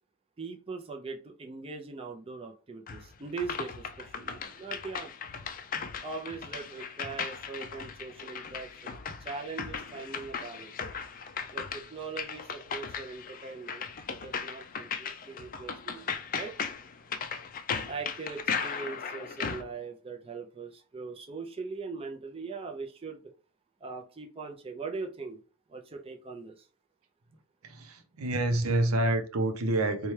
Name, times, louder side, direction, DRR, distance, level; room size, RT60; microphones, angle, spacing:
voice 1, 0.4-5.1 6.0-10.7 11.5-16.5 17.9-23.2 23.8-25.4 25.7-26.7, right 4 dB, 25° right, 0.5 m, -41 dB
sound 1, 2.9-19.6, left 6 dB, 40° left, 0.4 m, -37 dB
voice 2, 27.6-30.1, right 1 dB, 90° right, 0.6 m, -28 dB
4.2 x 2.3 x 3.2 m
head